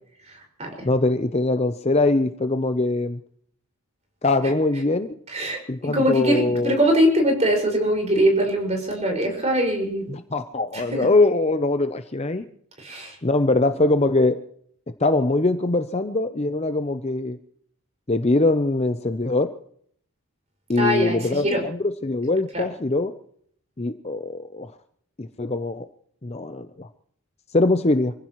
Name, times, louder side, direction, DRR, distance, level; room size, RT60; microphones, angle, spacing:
voice 1, 0.3-0.9 5.3-10.1 10.7-11.1 12.8-13.2 20.8-21.6 22.5-22.6, equal, 30° right, 2 dB, 5.6 m, -22 dB
voice 2, 0.8-3.2 4.2-5.1 5.7-6.8 10.1-12.4 13.2-14.4 15.0-17.4 18.1-19.5 20.7-21.8 22.0-23.1 23.8-24.7 25.2-25.9 26.2-26.9 27.5-28.1, left 2 dB, 30° left, 9 dB, 0.7 m, -22 dB
27.0 x 16.0 x 3.1 m, 0.62 s
head